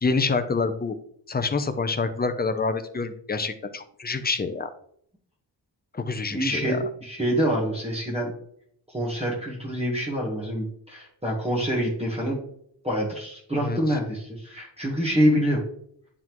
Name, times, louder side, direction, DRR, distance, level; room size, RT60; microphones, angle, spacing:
voice 1, 0.0-1.0 1.3-4.7 5.9-6.8 13.5-13.8, left 4 dB, 20° left, 10 dB, 0.5 m, -27 dB
voice 2, 6.3-8.3 8.9-12.4 12.8-15.6, equal, 15° right, -4 dB, 1.3 m, -26 dB
9.6 x 3.6 x 3.0 m, 0.66 s
wide cardioid pair, 150°, 44 cm